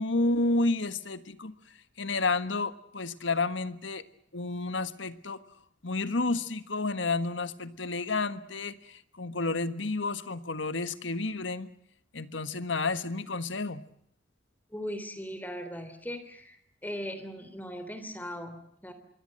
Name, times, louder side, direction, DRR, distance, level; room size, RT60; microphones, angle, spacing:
voice 1, 0.0-1.5 2.0-4.0 4.3-5.4 5.8-11.7 12.1-13.8, left 3 dB, 85° left, 12 dB, 1.5 m, -30 dB
voice 2, 14.7-16.6 16.8-18.9, equal, 10° left, 9 dB, 3.5 m, -39 dB
25.5 x 23.5 x 7.8 m, 0.71 s
head